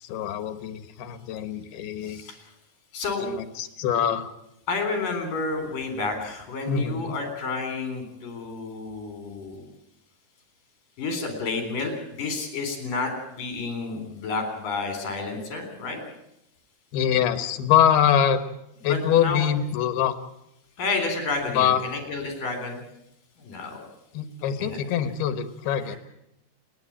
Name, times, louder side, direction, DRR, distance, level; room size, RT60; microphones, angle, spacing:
voice 1, 0.0-2.2 3.2-4.3 6.7-7.2 16.9-18.4 18.8-20.1 21.5-21.8 24.1-26.0, left 9 dB, 75° left, 11 dB, 3.3 m, -24 dB
voice 2, 2.0-2.5 2.9-3.3 4.7-9.7 11.0-16.0 18.9-19.5 20.8-22.8 23.4-23.8 24.6-24.8 25.9-26.0, left 3 dB, 60° left, 5 dB, 5.5 m, -30 dB
30.0 x 10.5 x 8.8 m, 0.83 s
omnidirectional pair, 4.5 m